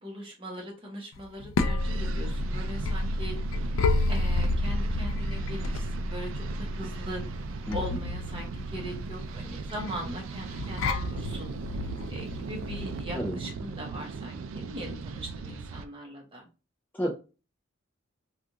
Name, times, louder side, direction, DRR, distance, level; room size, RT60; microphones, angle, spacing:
voice 1, 0.0-3.8 4.1-7.2 7.7-11.5 11.8-16.5, equal, 25° right, -1 dB, 1.0 m, -40 dB
sound 1, 1.2-13.0, left 2 dB, 80° left, 0.4 m, -30 dB
sound 2, 1.8-15.9, right 4 dB, 80° right, 0.3 m, -38 dB
voice 2, 7.7-7.8 13.1-13.4 16.9-17.1, equal, 10° left, -1 dB, 0.4 m, -30 dB
3.5 x 2.4 x 2.7 m, 0.31 s
head